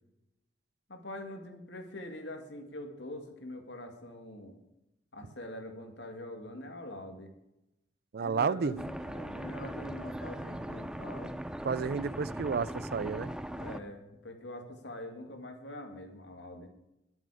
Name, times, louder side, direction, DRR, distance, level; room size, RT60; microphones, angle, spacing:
voice 1, 0.9-4.6 5.1-7.3 8.2-11.4 13.6-16.7, left 1 dB, 70° left, 2.2 m, -44 dB
voice 2, 8.1-8.7 11.6-13.3, right 5 dB, 60° right, 0.4 m, -31 dB
sound 1, 8.8-13.8, right 1 dB, 5° right, 0.5 m, -39 dB
20.5 x 8.0 x 5.0 m
head